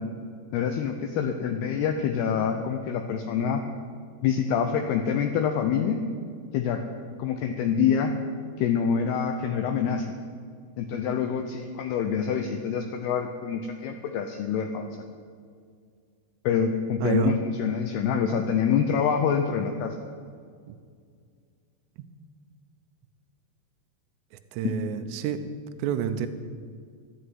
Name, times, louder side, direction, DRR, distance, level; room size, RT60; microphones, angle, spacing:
voice 1, 0.5-3.6 4.2-6.0 6.5-6.8 7.2-8.1 8.6-10.1 10.8-15.0 16.4-20.0 24.6-24.8, left 7 dB, 80° left, 5 dB, 2.3 m, -26 dB
voice 2, 17.0-17.3 20.7-20.8 24.5-25.4 25.8-26.3, right 10 dB, 85° right, 8 dB, 3.3 m, -28 dB
13.0 x 8.8 x 9.4 m, 2.1 s
omnidirectional pair, 5.7 m